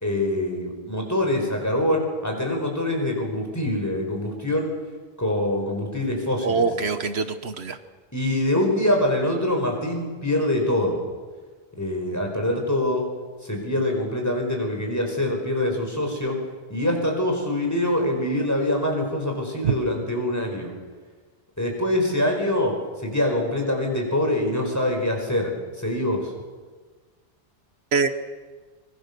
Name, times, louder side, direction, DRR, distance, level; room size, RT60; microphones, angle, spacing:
voice 1, 0.0-4.7 5.2-6.7 8.1-11.0 11.8-13.1 13.4-16.4 16.7-20.7 21.6-26.3, left 1 dB, 15° left, 1 dB, 4.9 m, -24 dB
voice 2, 6.4-7.8 19.6-19.7 27.9-28.1, right 5 dB, 75° right, 10 dB, 1.4 m, -23 dB
24.5 x 22.5 x 6.9 m, 1.4 s
omnidirectional pair, 1.1 m